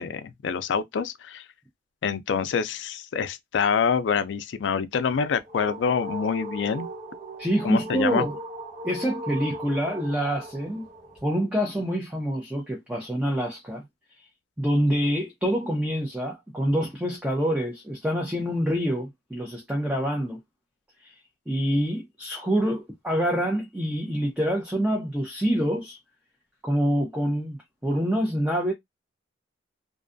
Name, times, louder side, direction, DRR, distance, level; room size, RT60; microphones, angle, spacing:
voice 1, 0.0-1.4 2.0-6.9 7.6-8.3, left 6 dB, 80° left, 0.4 m, -26 dB
sound 1, 5.1-11.2, right 1 dB, 50° right, 1.2 m, -38 dB
voice 2, 7.4-8.4 8.8-10.8 11.2-13.8 14.6-20.4 21.0-21.1 21.5-26.0 26.6-28.7, equal, 5° right, 0.5 m, -26 dB
2.5 x 2.2 x 2.5 m
head